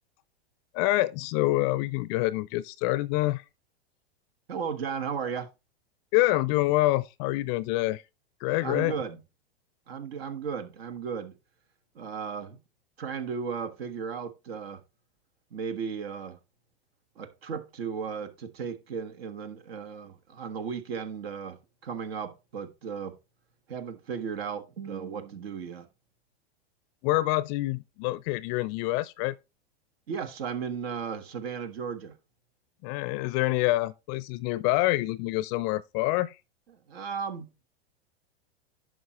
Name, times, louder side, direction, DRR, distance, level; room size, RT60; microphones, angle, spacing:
voice 1, 0.7-3.4 6.1-8.0 8.4-8.9 27.0-29.3 32.8-36.4, left 18 dB, 40° left, 0.5 m, -26 dB
voice 2, 4.5-5.5 8.6-9.2 9.9-11.3 11.9-12.6 13.0-14.8 15.5-16.4 17.2-23.2 23.7-25.9 30.1-32.2 36.9-37.5, right 6 dB, 70° right, 1.4 m, -35 dB
11.0 x 6.3 x 3.0 m
hypercardioid pair, 105°, 31 cm